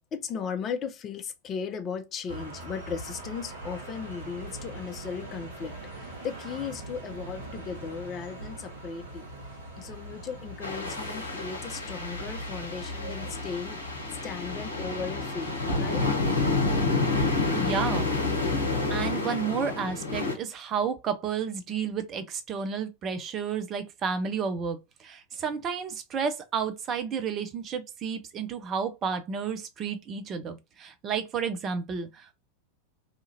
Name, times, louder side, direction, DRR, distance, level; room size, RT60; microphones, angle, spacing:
voice 1, 0.1-5.7 6.0-9.3 9.8-13.8 14.2-16.0, left 6 dB, 30° left, 0.6 m, -36 dB
sound 1, 2.3-19.1, equal, 65° right, 1.1 m, -40 dB
sound 2, 10.6-20.4, left 3 dB, 80° left, 0.7 m, -29 dB
voice 2, 17.5-18.1 18.9-32.3, right 6 dB, 30° right, 0.5 m, -31 dB
2.8 x 2.4 x 2.8 m
figure-of-eight pair, 90°, 0 cm